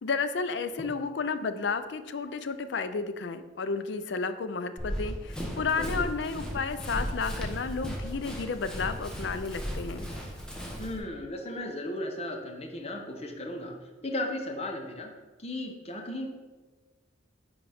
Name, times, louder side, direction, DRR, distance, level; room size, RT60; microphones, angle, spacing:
voice 1, 0.0-10.1, left 4 dB, 65° left, 11 dB, 0.4 m, -32 dB
Run, 4.8-11.0, equal, 5° left, 0.9 m, -36 dB
voice 2, 10.8-13.7 14.0-15.1 15.4-16.3, left 1 dB, 35° left, 2 dB, 0.9 m, -35 dB
10.0 x 4.0 x 3.4 m, 1.3 s
head